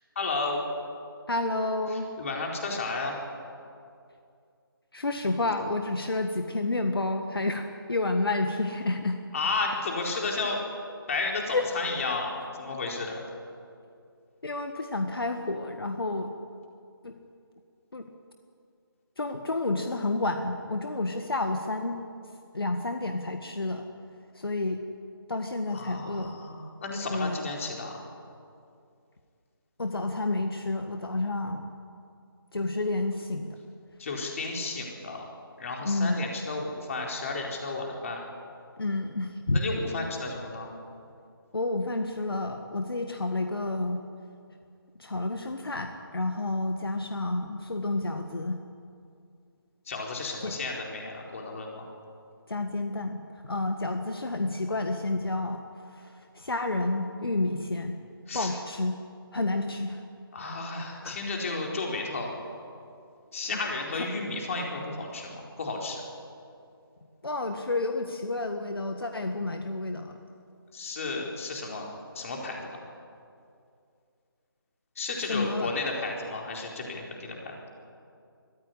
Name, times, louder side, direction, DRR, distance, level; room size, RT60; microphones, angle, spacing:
voice 1, 0.1-0.7 1.9-3.2 9.3-10.6 11.1-13.2 25.7-28.0 34.0-35.2 35.6-38.2 39.5-40.7 49.9-51.9 58.3-58.5 60.3-62.4 63.3-66.0 70.7-71.9 72.1-72.7 75.0-77.6, left 3 dB, 35° left, 0 dB, 4.4 m, -33 dB
voice 2, 1.3-2.1 4.9-9.2 11.5-11.6 14.4-16.3 17.0-17.2 17.9-18.1 19.2-22.0 22.5-23.9 24.3-24.8 25.3-26.4 27.1-27.4 29.8-31.6 32.5-33.6 35.8-36.2 38.8-39.6 41.5-44.0 45.0-48.6 50.4-50.6 52.5-58.0 58.3-59.0 59.3-60.0 61.0-61.2 63.9-64.1 67.2-70.2 75.3-75.7, left 2 dB, 70° left, 5 dB, 1.7 m, -30 dB
23.5 x 15.0 x 10.0 m, 2.4 s
figure-of-eight pair, 160°, 13 cm